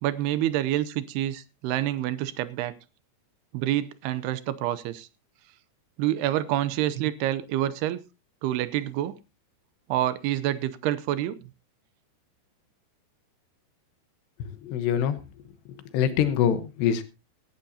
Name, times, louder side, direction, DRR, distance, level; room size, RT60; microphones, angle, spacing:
voice 1, 0.0-2.8 3.5-5.1 6.0-8.0 8.4-9.2 9.9-11.4, right 13 dB, 80° right, 15 dB, 2.7 m, -27 dB
voice 2, 14.4-15.2 15.9-17.0, left 9 dB, 85° left, 11 dB, 3.3 m, -24 dB
18.0 x 11.5 x 2.8 m, 0.27 s
omnidirectional pair, 4.8 m